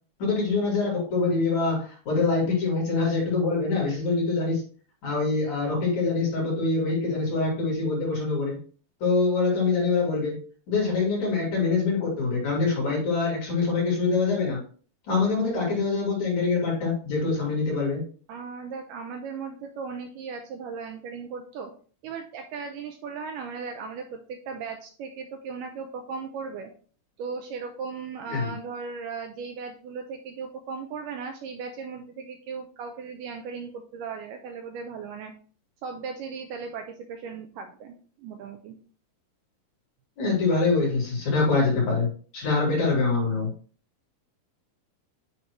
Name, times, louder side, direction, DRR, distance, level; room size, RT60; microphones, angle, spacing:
voice 1, 0.2-4.6 5.0-8.6 9.0-10.4 10.7-14.6 15.1-18.0 28.3-28.5 40.2-43.5, left 4 dB, 50° left, -3 dB, 3.9 m, -24 dB
voice 2, 18.3-21.7 22.0-26.7 27.2-35.3 35.8-38.8, right 5 dB, 80° right, 5 dB, 2.0 m, -37 dB
8.9 x 3.7 x 3.1 m, 0.41 s
omnidirectional pair, 4.2 m